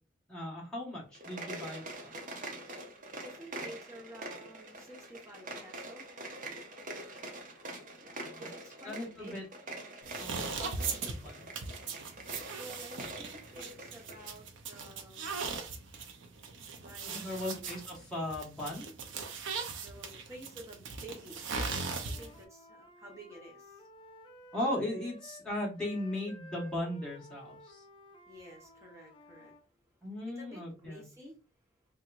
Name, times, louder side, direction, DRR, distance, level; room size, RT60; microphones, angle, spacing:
voice 1, 0.3-2.1 8.8-9.4 10.2-11.5 17.0-18.9 24.5-27.8 30.0-31.0, left 1 dB, 5° left, -4 dB, 1.3 m, -37 dB
sound 1, 1.1-14.3, right 2 dB, 40° right, 0.7 m, -45 dB
voice 2, 3.2-6.1 8.0-9.4 12.6-15.4 16.8-17.7 19.7-21.5 22.0-23.8 28.3-30.0 30.3-31.3, right 1 dB, 15° right, -1 dB, 1.1 m, -51 dB
sound 2, 10.0-22.4, right 4 dB, 80° right, 0.6 m, -39 dB
Wind instrument woodwind instrument, 21.8-25.5 25.7-29.6, left 1 dB, 25° left, 0.5 m, -54 dB
3.5 x 2.9 x 2.5 m, 0.32 s
head